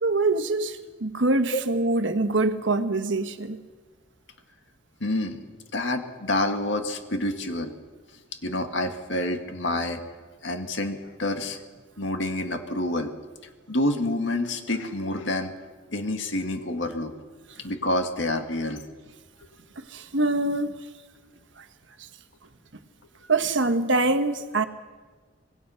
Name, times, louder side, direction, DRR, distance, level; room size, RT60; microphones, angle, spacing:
voice 1, 0.0-3.6 19.9-20.7 23.3-24.6, right 2 dB, 70° right, 1.3 m, -24 dB
voice 2, 5.0-5.4 5.7-7.7 8.4-10.0 10.4-11.6 12.0-13.1 13.7-15.5 15.9-17.1 17.6-18.8, left 1 dB, 70° left, 2.1 m, -28 dB
25.5 x 20.0 x 5.7 m
head